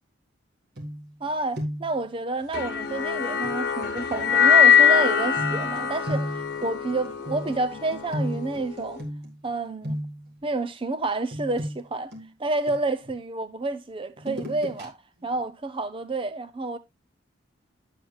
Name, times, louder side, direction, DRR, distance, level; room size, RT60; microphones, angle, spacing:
sound 1, 0.8-1.3 1.5-2.0 3.4-3.6 5.4-9.5 9.8-10.4 11.3-13.1 14.2-14.9 15.2-15.4, equal, 55° right, 1.8 m, -34 dB
voice 1, 1.2-9.0 9.4-10.0 10.4-12.1 12.4-15.0 15.2-16.8, right 2 dB, 30° right, 0.6 m, -29 dB
sound 2, 2.5-8.9, left 7 dB, 60° left, 1.4 m, -22 dB
8.5 x 7.6 x 2.3 m
head